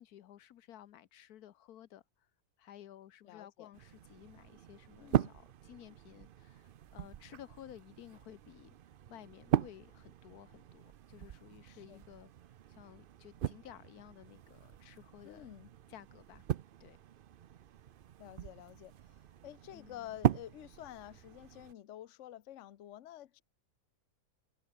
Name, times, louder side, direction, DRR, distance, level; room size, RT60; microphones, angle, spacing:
voice 1, 0.0-2.0 2.6-8.7 9.1-12.3 12.7-15.5 15.9-16.5 16.8-17.0 19.7-20.2, left 11 dB, 80° left, 1.3 m, -55 dB
voice 2, 3.2-3.7 5.0-5.4 11.7-12.0 15.2-15.7 18.2-23.4, left 12 dB, 60° left, 1.0 m, -50 dB
sound 1, 3.7-21.7, right 10 dB, 85° right, 0.4 m, -39 dB
omnidirectional pair, 1.6 m